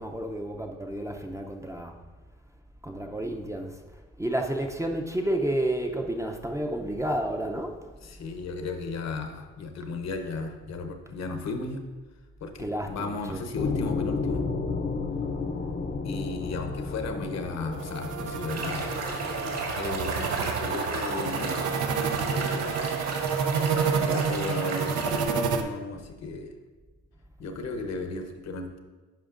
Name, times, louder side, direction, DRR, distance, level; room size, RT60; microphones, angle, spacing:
voice 1, 0.0-2.0 2.8-3.8 4.2-7.9 12.6-13.4 24.0-24.3, right 1 dB, 10° right, 2 dB, 0.5 m, -31 dB
voice 2, 8.0-11.8 12.4-14.4 16.0-19.0 19.4-21.6 21.9-23.0 23.9-26.5 27.4-28.8, left 3 dB, 60° left, 6 dB, 0.9 m, -35 dB
sound 1, 13.5-19.7, left 4 dB, 35° left, 0.6 m, -32 dB
sound 2, 17.7-25.6, right 6 dB, 75° right, 0.6 m, -29 dB
sound 3, 18.5-25.2, right 3 dB, 55° right, 1.8 m, -34 dB
10.5 x 5.2 x 2.5 m, 1.3 s
cardioid pair, 90°, 30 cm